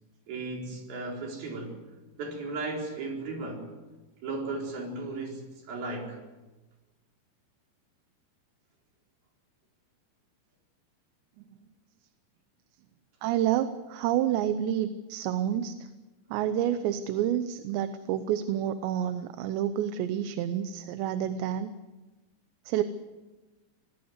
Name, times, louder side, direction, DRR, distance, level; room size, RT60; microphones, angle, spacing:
voice 1, 0.3-1.8 2.2-3.7 4.2-6.2, right 3 dB, 55° right, 0 dB, 5.9 m, -35 dB
voice 2, 13.2-15.8 16.3-21.7 22.7-22.8, right 10 dB, 80° right, 10 dB, 3.1 m, -29 dB
25.0 x 19.5 x 8.0 m, 1.1 s
omnidirectional pair, 5.1 m